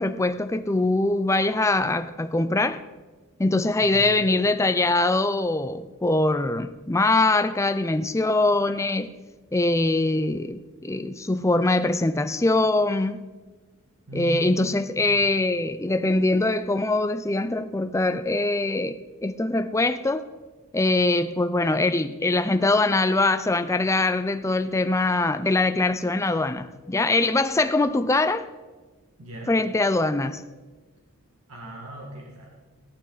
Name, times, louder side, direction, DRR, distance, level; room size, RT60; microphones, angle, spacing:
voice 1, 0.0-2.8 3.4-9.1 9.5-13.2 14.1-20.3 20.7-28.5 29.5-30.4, left 2 dB, 15° left, 0.4 m, -23 dB
voice 2, 3.8-4.5 14.1-14.6 15.1-15.2 29.2-29.6 31.5-32.7, right 1 dB, 75° right, 1.9 m, -37 dB
17.5 x 8.7 x 4.1 m
head